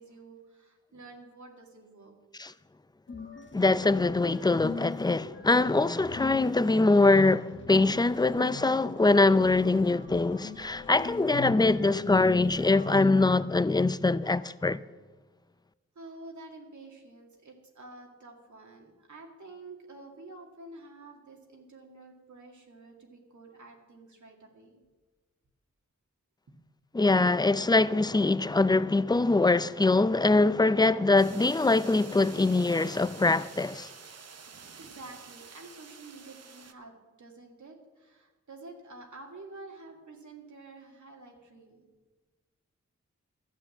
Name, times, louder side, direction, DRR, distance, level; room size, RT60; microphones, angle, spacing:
voice 1, 0.0-2.1 16.0-24.8 34.8-36.9 37.2-41.9, right 2 dB, 75° right, 2.2 m, -49 dB
sound 1, 3.1-13.4, left 4 dB, 40° left, 1.0 m, -42 dB
voice 2, 3.5-14.8 26.9-33.9, left 3 dB, 15° left, 0.4 m, -23 dB
sound 2, 31.2-36.7, right 5 dB, 60° right, 0.8 m, -49 dB
12.0 x 7.9 x 7.1 m
cardioid pair, 45°, 29 cm